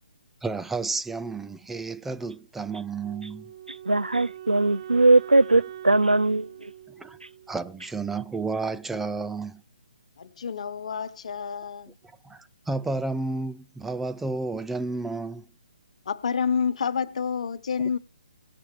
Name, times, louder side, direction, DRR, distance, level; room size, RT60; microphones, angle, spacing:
voice 1, 0.4-3.5 7.0-7.2 7.5-9.6 12.2-15.5, right 3 dB, 5° right, 0.4 m, -31 dB
Wind instrument woodwind instrument, 3.0-8.1, right 11 dB, 50° right, 0.7 m, -43 dB
voice 2, 3.7-6.7, right 2 dB, 90° right, 0.4 m, -20 dB
voice 3, 10.2-11.9 16.1-18.0, left 6 dB, 55° left, 1.0 m, -28 dB
18.5 x 6.4 x 3.1 m
figure-of-eight pair, 140°, 4 cm